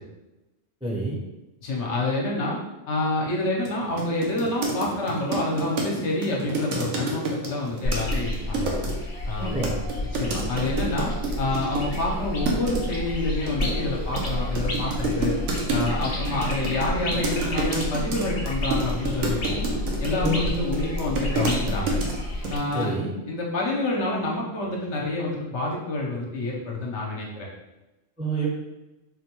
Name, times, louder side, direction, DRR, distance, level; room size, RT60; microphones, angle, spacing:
voice 1, 0.8-1.2 9.4-9.7 20.2-20.5 22.7-23.1 28.2-28.5, right 1 dB, 5° right, -6 dB, 0.6 m, -27 dB
voice 2, 1.6-2.6 2.9-8.7 9.3-9.6 10.1-11.1 11.4-15.4 15.7-19.7 20.0-22.0 22.5-23.0 23.3-27.5, left 2 dB, 65° left, -3 dB, 1.0 m, -28 dB
sound 1, 3.6-3.7 4.0-8.9 9.6-12.0 12.4-12.8 13.5-22.1 22.4-22.9, right 2 dB, 70° right, 1.0 m, -29 dB
sound 2, 7.8-22.6, left 1 dB, 45° left, 0.5 m, -30 dB
4.1 x 2.2 x 2.9 m, 1.0 s
omnidirectional pair, 1.3 m